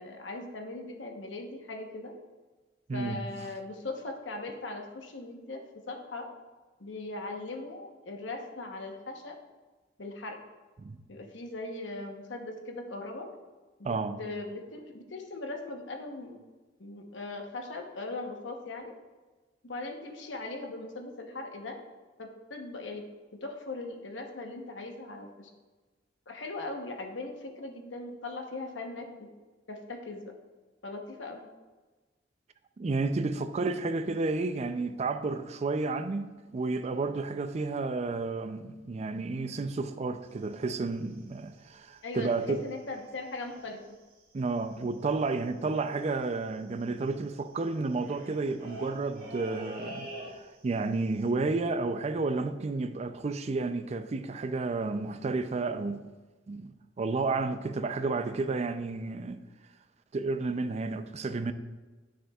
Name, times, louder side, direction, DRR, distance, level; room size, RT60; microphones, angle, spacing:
voice 1, 0.0-2.1 2.9-5.6 5.9-6.3 6.8-9.4 10.0-10.4 11.1-13.3 13.8-16.4 16.8-18.9 19.6-21.8 22.2-23.0 23.4-25.5 26.3-29.3 29.7-30.3 30.8-31.5 42.0-42.3 42.6-43.8, left 2 dB, 80° left, 1.0 m, -39 dB
voice 2, 2.9-3.3 10.8-11.0 13.8-14.2 32.8-42.7 44.3-56.1 56.5-59.4 60.1-61.5, right 3 dB, 35° right, 0.4 m, -31 dB
sound 1, 40.2-42.6 42.8-43.1 43.4-43.9 44.1-44.2 44.4-50.7 51.0-51.3, right 1 dB, 55° right, 1.8 m, -47 dB
9.7 x 6.2 x 2.3 m
head